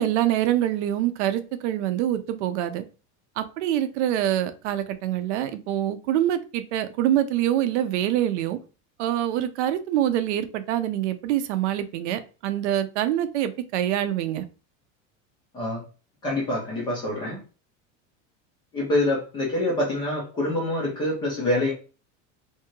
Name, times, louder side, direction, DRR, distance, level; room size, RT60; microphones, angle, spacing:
voice 1, 0.0-2.8 3.4-8.6 9.0-14.4, right 12 dB, 70° right, 10 dB, 0.5 m, -25 dB
voice 2, 16.2-17.4 18.7-21.7, left 1 dB, 15° left, -3 dB, 0.3 m, -26 dB
2.7 x 2.3 x 2.9 m, 0.34 s
supercardioid pair, 180°, 36 cm